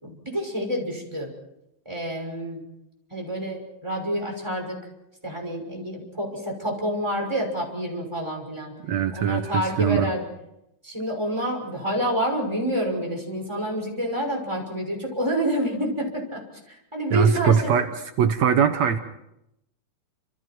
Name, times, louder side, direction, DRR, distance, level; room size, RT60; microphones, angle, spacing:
voice 1, 0.0-1.3 1.8-2.6 3.1-4.8 5.2-8.7 9.1-10.2 10.8-17.8, equal, 10° right, 0 dB, 6.0 m, -28 dB
voice 2, 8.9-10.1 17.1-17.9 18.2-19.0, right 7 dB, 70° right, 7 dB, 2.2 m, -21 dB
30.0 x 27.5 x 4.6 m, 0.84 s
omnidirectional pair, 3.4 m